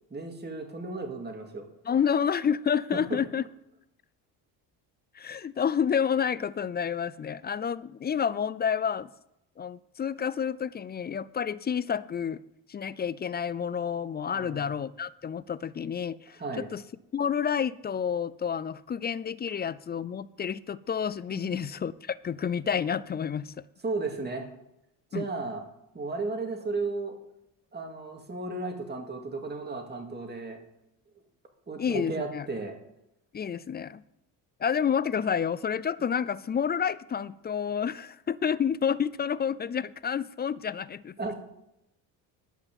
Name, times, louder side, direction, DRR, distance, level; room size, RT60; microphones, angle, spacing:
voice 1, 0.1-1.7 2.9-3.2 14.3-14.7 16.4-16.7 21.3-21.6 23.8-24.5 25.1-25.6 25.9-27.2 27.7-30.6 31.7-32.8 41.2-41.3, right 3 dB, 20° right, 2.5 m, -34 dB
voice 2, 1.9-3.4 5.1-9.1 9.6-12.4 12.7-16.8 17.1-23.5 25.1-25.2 31.8-32.5 33.3-34.0 34.6-41.3, left 7 dB, 20° left, 0.3 m, -29 dB
11.0 x 5.9 x 7.6 m
supercardioid pair, 70°, 50 cm